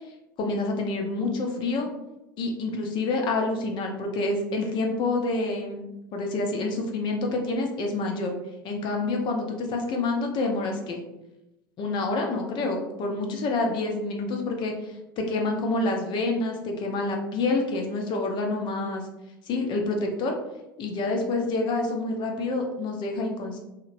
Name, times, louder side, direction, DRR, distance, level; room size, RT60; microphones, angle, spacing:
voice 1, 0.4-1.9 2.4-8.4 8.6-11.0 11.8-19.0 19.4-20.4 20.8-23.6, left 2 dB, 40° left, 2 dB, 0.6 m, -27 dB
2.9 x 2.8 x 2.5 m, 0.93 s
figure-of-eight pair, 75°, 12 cm